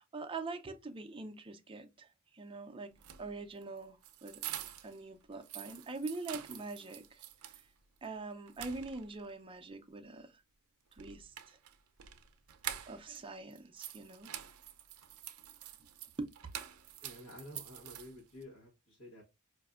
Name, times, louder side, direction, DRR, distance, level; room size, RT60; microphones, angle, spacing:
voice 1, 0.1-2.1 2.3-2.9 3.2-4.4 4.8-7.2 8.0-10.3 11.0-11.6 12.9-14.3 16.2-16.3, right 3 dB, 25° right, 0.5 m, -43 dB
sound 1, 2.9-5.0 5.3-7.7 8.0-8.1 8.5-9.3 10.9-13.2 13.5-18.4, right 11 dB, 75° right, 0.5 m, -47 dB
voice 2, 17.0-19.2, left 1 dB, 85° left, 1.2 m, -51 dB
4.9 x 2.6 x 2.4 m
head